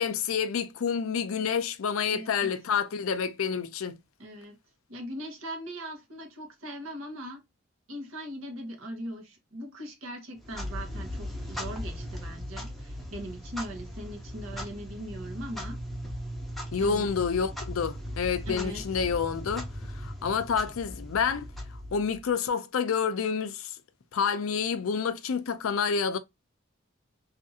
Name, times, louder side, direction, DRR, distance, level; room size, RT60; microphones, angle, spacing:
voice 1, 0.0-4.0 16.7-21.5 21.9-23.8 24.1-26.2, left 6 dB, 75° left, 0.4 m, -28 dB
voice 2, 2.1-2.6 4.2-4.6 4.9-7.4 7.9-15.8 16.8-17.2 18.4-18.8, equal, 75° right, 1.1 m, -40 dB
Clock, 10.4-22.3, equal, ahead, 0.6 m, -38 dB
2.7 x 2.5 x 2.7 m
head